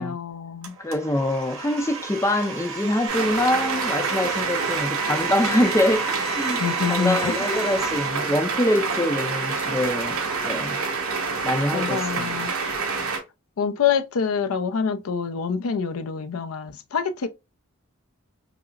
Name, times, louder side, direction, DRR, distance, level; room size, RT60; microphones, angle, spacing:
voice 1, 0.0-0.7 6.6-7.3 11.7-12.5 13.6-17.3, left 6 dB, 85° left, 0.5 m, -26 dB
Domestic sounds home sounds, 0.6-8.1, right 5 dB, 65° right, 1.0 m, -33 dB
voice 2, 0.8-10.8 11.4-12.3, left 1 dB, 15° left, 0.4 m, -25 dB
sound 1, 3.1-13.2, right 4 dB, 85° right, 1.2 m, -27 dB
4.9 x 2.0 x 2.3 m
head